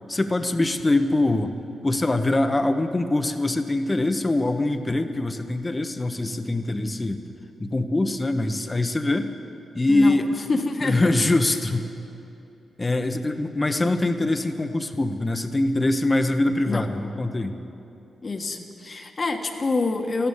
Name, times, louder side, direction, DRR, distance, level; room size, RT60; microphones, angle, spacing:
voice 1, 0.1-1.5 1.8-7.2 7.6-9.3 9.7-10.3 10.8-11.9 12.8-17.6, left 2 dB, 25° left, 8 dB, 1.1 m, -23 dB
voice 2, 10.5-11.3 13.8-14.0 16.7-16.8 18.2-20.3, left 3 dB, 40° left, 5 dB, 1.5 m, -27 dB
14.5 x 12.5 x 7.4 m, 2.8 s
cardioid pair, 60°, 0 cm